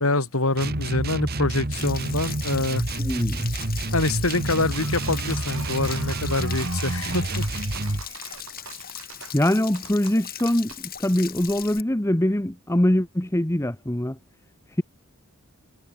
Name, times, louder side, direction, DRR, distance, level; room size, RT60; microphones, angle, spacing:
voice 1, 0.0-2.8 3.9-7.5, left 2 dB, 75° left, 3.5 m, -25 dB
sound 1, 0.5-8.1, right 1 dB, 45° right, 1.9 m, -28 dB
Stream / Splash splatter / Trickle dribble, 1.7-11.8, left 11 dB, 45° left, 6.4 m, -39 dB
voice 2, 3.0-3.5 9.3-14.2, left 1 dB, 10° left, 1.0 m, -23 dB
sound 2, 4.6-10.8, right 6 dB, 65° right, 6.5 m, -41 dB
head